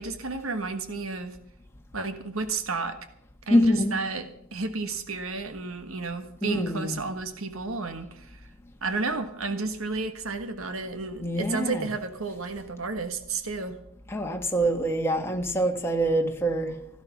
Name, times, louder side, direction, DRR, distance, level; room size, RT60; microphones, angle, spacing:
voice 1, 0.0-1.4 1.9-3.0 3.5-4.3 4.5-8.4 8.8-13.8, right 3 dB, 75° right, 9 dB, 1.4 m, -32 dB
voice 2, 3.5-3.9 6.4-7.0 11.2-11.9 14.1-16.7, equal, 10° left, 2 dB, 1.5 m, -25 dB
16.5 x 12.0 x 6.0 m, 0.73 s
head